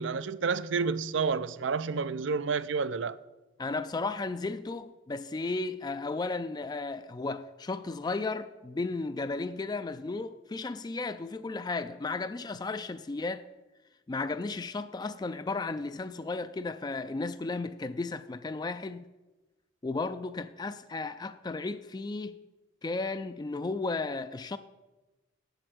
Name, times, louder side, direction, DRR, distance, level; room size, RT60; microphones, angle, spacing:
voice 1, 0.0-3.2, right 5 dB, 75° right, 0.5 m, -30 dB
voice 2, 3.6-13.4 14.1-19.1 19.8-22.3 22.8-24.6, left 3 dB, 20° left, 0.3 m, -34 dB
8.9 x 7.8 x 7.8 m
head